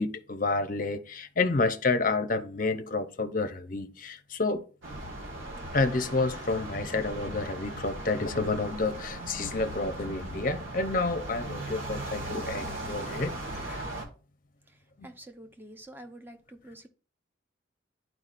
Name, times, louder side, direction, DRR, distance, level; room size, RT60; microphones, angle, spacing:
voice 1, 0.0-4.6 5.7-13.3 13.6-13.8 15.0-15.1, left 3 dB, 45° left, 0.7 m, -29 dB
sound 1, 4.8-14.1, right 1 dB, 80° right, 1.7 m, -38 dB
voice 2, 14.7-16.9, right 1 dB, 10° right, 0.7 m, -48 dB
11.5 x 4.7 x 2.5 m
head